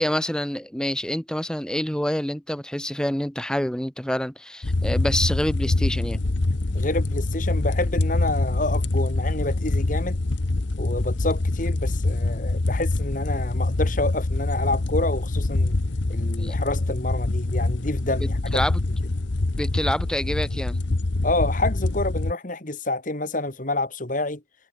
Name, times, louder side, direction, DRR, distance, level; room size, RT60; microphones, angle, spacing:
voice 1, 0.0-6.2 16.4-16.5 18.2-18.8 19.6-20.8, left 1 dB, 5° left, 0.7 m, -27 dB
sound 1, 4.6-22.3, left 2 dB, 80° left, 1.0 m, -25 dB
voice 2, 6.7-10.2 10.8-15.8 16.1-18.7 21.2-24.4, left 2 dB, 45° left, 2.6 m, -28 dB
head